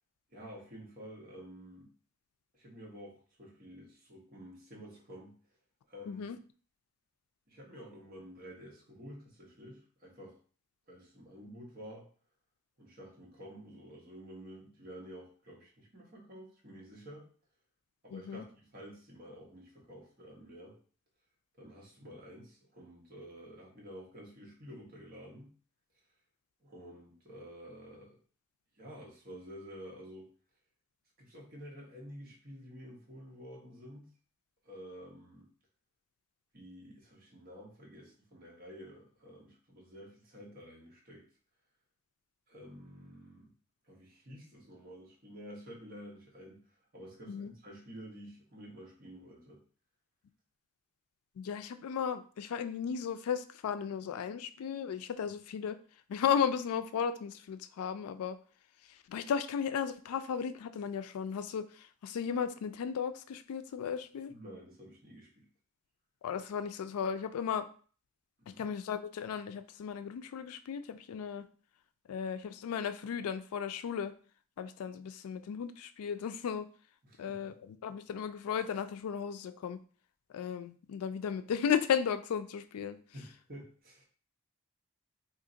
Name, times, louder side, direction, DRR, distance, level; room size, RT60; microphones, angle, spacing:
voice 1, 0.3-1.9 2.5-5.4 5.9-6.3 7.5-10.3 10.9-12.0 12.8-17.2 18.0-20.8 21.6-25.5 26.6-28.2 28.8-30.3 31.2-34.1 34.6-35.5 36.5-41.2 42.5-43.5 43.9-49.6 64.3-65.5 68.4-68.6 77.0-77.5 83.1-84.0, equal, 40° right, -3 dB, 1.1 m, -50 dB
voice 2, 6.1-6.4 18.1-18.4 47.3-47.5 51.4-55.8 56.1-58.4 59.1-64.3 66.2-67.7 68.6-71.5 72.1-74.1 74.6-76.7 77.2-79.8 80.3-83.0, left 7 dB, 85° left, 11 dB, 0.3 m, -35 dB
2.7 x 2.6 x 3.8 m, 0.41 s
head